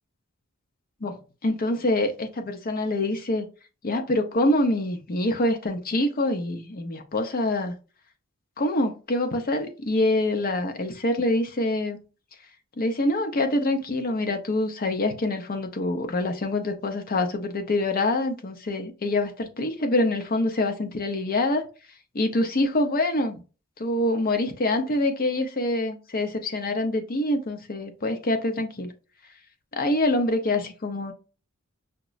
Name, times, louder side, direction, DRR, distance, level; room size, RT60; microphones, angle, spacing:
voice 1, 1.4-3.5 3.8-7.7 8.6-12.0 12.8-21.7 22.1-23.4 23.8-28.9 29.7-31.1, left 1 dB, 45° left, 0.6 m, -25 dB
5.8 x 2.0 x 2.4 m
head